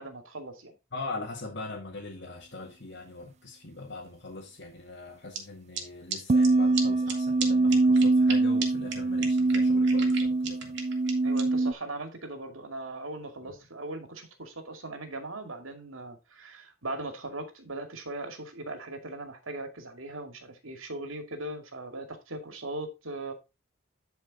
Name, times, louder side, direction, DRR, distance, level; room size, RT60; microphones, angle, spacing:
voice 1, 0.0-0.7 11.2-23.3, right 2 dB, 80° right, 2.3 m, -39 dB
voice 2, 0.9-10.8 13.4-13.5, left 3 dB, 55° left, 1.9 m, -41 dB
sound 1, 5.3-5.4 5.7-5.8 6.1-6.2 6.4-6.5 6.7-6.8 7.1-7.2 7.4-7.5 7.7-8.3 8.6-8.7 8.9-9.0 9.2-11.4, right 7 dB, 60° right, 2.6 m, -34 dB
sound 2, 6.3-11.7, right 2 dB, 35° right, 0.4 m, -23 dB
10.5 x 5.1 x 4.0 m
head